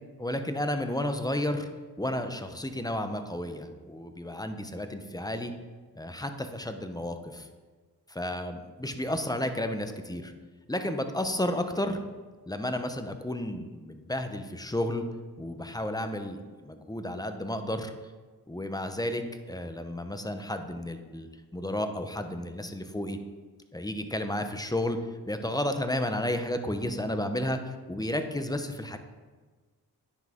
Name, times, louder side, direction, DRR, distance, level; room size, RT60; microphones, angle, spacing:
voice 1, 0.2-1.7 2.0-5.5 5.9-7.5 8.1-10.3 10.7-12.0 12.5-15.0 15.4-17.9 18.5-23.2 23.7-25.0 25.3-27.6 27.9-29.0, left 1 dB, 10° left, 7 dB, 0.9 m, -32 dB
9.9 x 6.0 x 3.7 m, 1.4 s
cardioid pair, 45°, 40 cm